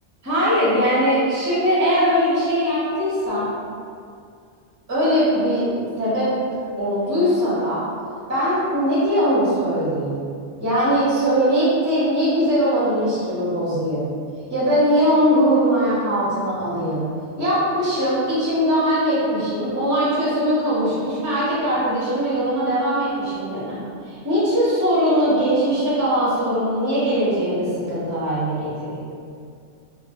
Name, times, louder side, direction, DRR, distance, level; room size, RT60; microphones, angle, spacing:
voice 1, 0.2-3.5 4.9-6.3 6.8-7.8 8.3-10.2 10.6-14.1 14.5-17.0 17.4-23.8 24.1-29.0, equal, 20° right, -9 dB, 0.5 m, -20 dB
2.1 x 2.0 x 3.3 m, 2.3 s
omnidirectional pair, 1.2 m